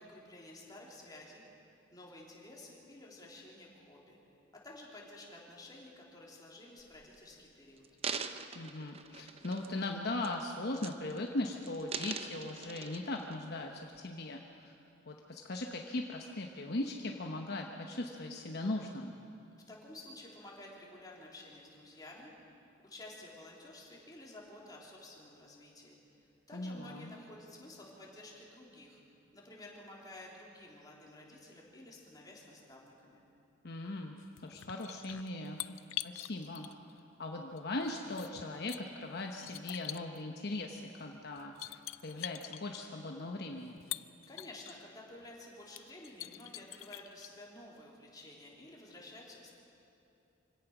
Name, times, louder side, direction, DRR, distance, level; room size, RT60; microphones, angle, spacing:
voice 1, 0.0-1.4 1.9-4.2 4.6-7.8 19.7-22.3 22.8-33.2 44.3-49.5, left 1 dB, 20° left, -3 dB, 3.4 m, -52 dB
sound 1, 6.8-7.2 7.8-9.9 10.2-10.5 10.8-11.3 11.6-13.4 13.9-14.0, right 6 dB, 30° right, 0.7 m, -42 dB
voice 2, 8.5-14.7 15.1-19.1 26.5-27.1 33.6-34.2 34.4-35.6 36.0-36.7 37.2-43.8, left 2 dB, 55° left, 2 dB, 1.0 m, -39 dB
sound 2, 34.2-37.0 37.6-38.8 39.4-40.2 41.0-41.1 41.4-42.6 43.6-44.7 45.2-45.3 45.7-47.3, left 15 dB, 90° left, 0.5 m, -44 dB
25.0 x 17.0 x 6.1 m, 2.7 s
head